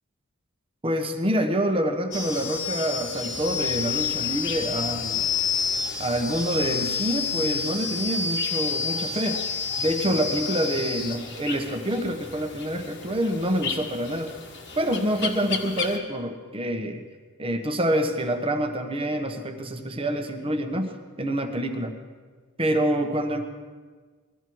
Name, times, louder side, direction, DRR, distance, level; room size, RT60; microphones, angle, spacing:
voice 1, 0.8-5.3 6.0-9.4 9.8-14.3 14.8-17.0 17.4-21.9 22.6-23.4, equal, 25° right, 5 dB, 1.2 m, -27 dB
sound 1, 2.1-16.0, left 5 dB, 55° left, 1.5 m, -30 dB
20.0 x 13.0 x 4.7 m, 1.5 s
head